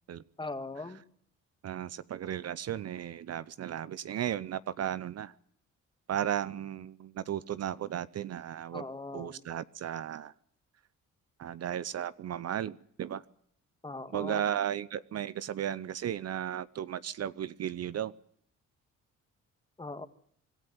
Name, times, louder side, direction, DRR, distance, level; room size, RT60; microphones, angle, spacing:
voice 1, 0.4-1.0 8.7-9.5 13.8-14.4 19.8-20.1, left 2 dB, 15° left, 10 dB, 1.8 m, -40 dB
voice 2, 1.6-5.3 6.1-8.9 9.1-10.3 11.4-13.2 14.1-18.1, right 10 dB, 55° right, 17 dB, 0.8 m, -35 dB
25.5 x 14.0 x 9.2 m, 0.68 s
cardioid pair, 90°, 30 cm